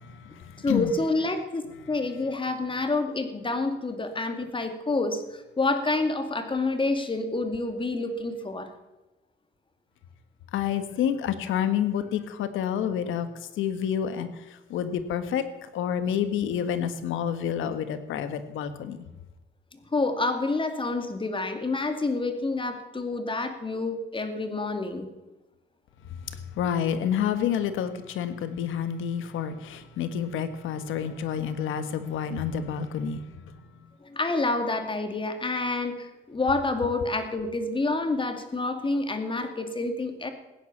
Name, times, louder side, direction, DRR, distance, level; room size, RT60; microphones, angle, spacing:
voice 1, 0.0-0.9 10.5-13.3 13.6-15.4 15.7-19.0 26.3-33.2, left 8 dB, 85° left, 11 dB, 1.5 m, -29 dB
voice 2, 0.6-8.7 12.8-12.9 19.9-25.1 34.0-40.3, left 3 dB, 25° left, 7 dB, 2.4 m, -28 dB
16.0 x 10.0 x 7.3 m, 1.1 s
cardioid pair, 90°, 20 cm